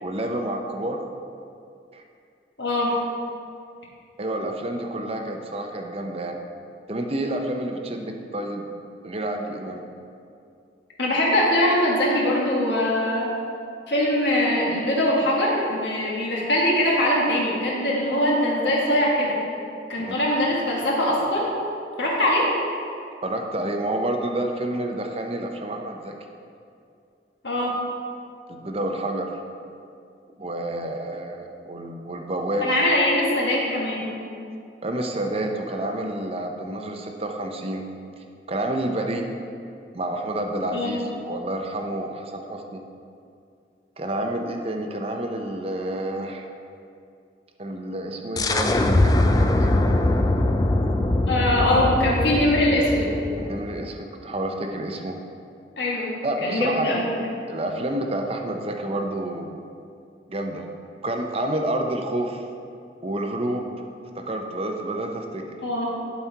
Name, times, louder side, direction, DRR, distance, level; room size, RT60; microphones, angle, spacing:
voice 1, 0.0-1.0 1.9-2.0 4.2-6.4 6.9-8.7 9.0-9.8 20.0-20.1 23.2-26.1 28.5-29.3 30.4-32.7 34.8-37.8 38.2-39.2 39.9-42.8 44.0-46.4 47.6-49.7 53.4-55.2 56.2-57.1 57.5-59.6 60.3-60.6 61.0-62.5 63.0-63.7 64.1-65.5, right 1 dB, 35° right, 3 dB, 0.6 m, -29 dB
voice 2, 2.6-3.0 11.0-13.3 13.9-19.4 19.9-21.4 22.0-22.5 27.4-27.7 32.6-34.1 40.7-41.0 51.3-53.1 55.8-56.1 56.4-57.3 65.6-65.9, left 1 dB, 75° left, -3 dB, 1.6 m, -22 dB
sound 1, 48.4-53.9, left 1 dB, 20° left, 0.3 m, -22 dB
11.0 x 4.3 x 4.5 m, 2.5 s
head